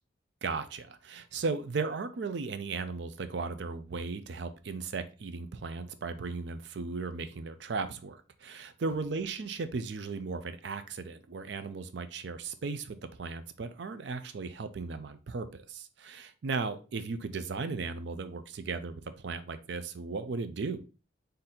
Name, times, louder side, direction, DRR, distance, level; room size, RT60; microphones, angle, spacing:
voice 1, 0.4-20.8, right 4 dB, 65° right, 0.4 m, -36 dB
4.2 x 2.6 x 3.7 m
head